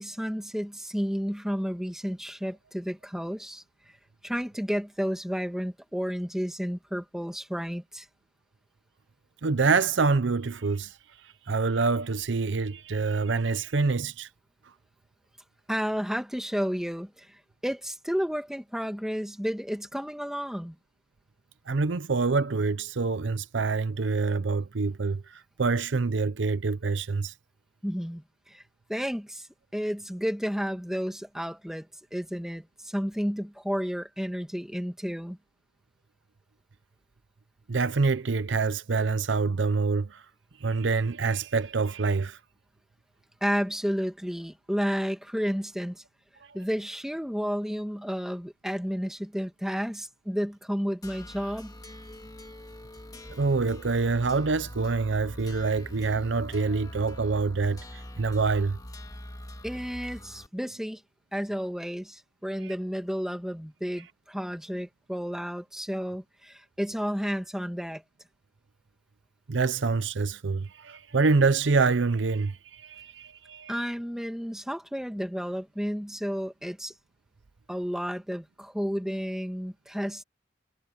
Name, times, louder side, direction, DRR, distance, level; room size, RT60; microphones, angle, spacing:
voice 1, 0.0-3.6 4.2-8.1 15.7-20.7 27.8-28.6 28.9-29.5 29.7-35.4 43.4-46.0 46.5-51.8 59.6-61.0 61.3-68.0 73.7-76.9 77.7-80.2, equal, 5° right, 2.3 m, -32 dB
voice 2, 9.4-11.0 11.5-14.3 21.7-27.3 37.7-40.2 40.6-42.4 46.4-46.6 53.3-58.8 62.6-62.7 69.5-73.7, right 4 dB, 80° right, 0.7 m, -26 dB
sound 1, 51.0-60.5, left 1 dB, 20° left, 1.9 m, -43 dB
head